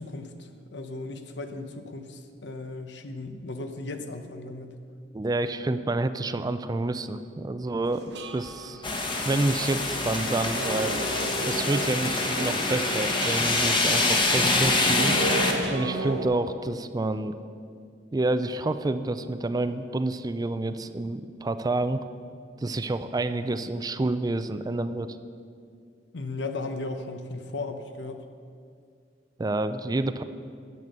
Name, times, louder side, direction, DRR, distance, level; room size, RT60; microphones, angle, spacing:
voice 1, 0.0-4.8 26.1-28.3, left 2 dB, 80° left, 7 dB, 0.9 m, -36 dB
voice 2, 5.1-8.8 9.2-11.0 11.5-15.2 15.7-17.4 18.1-22.1 22.6-25.2 29.4-30.2, right 2 dB, 20° right, 11 dB, 0.4 m, -28 dB
sound 1, 7.8-16.3, right 1 dB, 70° right, 1.2 m, -35 dB
sound 2, 8.8-15.5, left 2 dB, 30° left, 1.2 m, -25 dB
11.0 x 7.9 x 6.7 m, 2.2 s
head